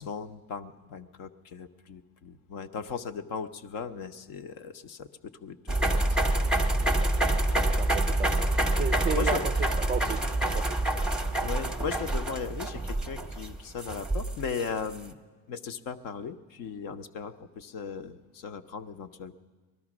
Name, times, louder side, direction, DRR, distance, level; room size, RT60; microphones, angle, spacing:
voice 1, 0.0-5.1 5.4-6.6 7.9-8.1 9.1-9.5 11.4-15.2 15.5-19.3, left 6 dB, 55° left, 8 dB, 0.9 m, -37 dB
sound 1, 5.7-15.0, right 1 dB, ahead, 0.9 m, -27 dB
voice 2, 7.8-8.5 8.7-10.8, right 8 dB, 25° right, 11 dB, 0.4 m, -34 dB
19.0 x 12.5 x 6.1 m, 1.3 s
supercardioid pair, 90°, 40 cm